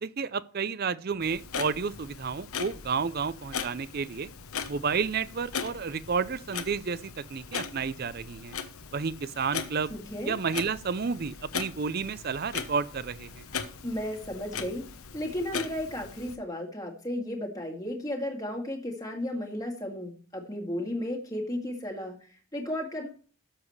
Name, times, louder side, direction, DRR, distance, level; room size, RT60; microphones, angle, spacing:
voice 1, 0.0-4.3 4.7-8.5 8.9-9.9 10.3-13.4, right 5 dB, 45° right, 0.5 m, -31 dB
Clock, 1.2-16.4, left 6 dB, 80° left, 1.0 m, -39 dB
voice 2, 9.9-10.4 13.8-14.8 15.1-23.1, left 1 dB, 15° left, 2.0 m, -34 dB
12.5 x 7.2 x 3.2 m
head